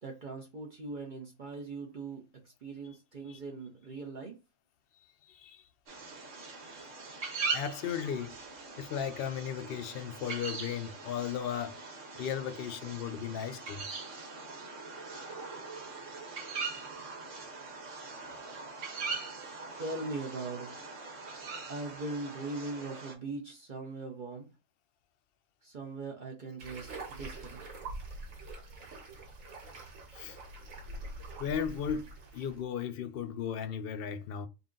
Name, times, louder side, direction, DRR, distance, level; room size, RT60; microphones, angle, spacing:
voice 1, 0.0-2.3 2.6-4.4 19.8-20.9 21.7-24.5 25.6-27.6, right 3 dB, 45° right, 0.9 m, -40 dB
voice 2, 5.0-5.7 6.6-8.4 8.8-11.8 12.2-13.9 30.1-30.4 31.4-34.5, left 8 dB, 60° left, 0.6 m, -36 dB
sound 1, 5.9-23.1, right 4 dB, 70° right, 1.4 m, -41 dB
sound 2, 26.6-32.6, right 2 dB, 90° right, 1.5 m, -45 dB
3.9 x 2.4 x 3.7 m
omnidirectional pair, 1.3 m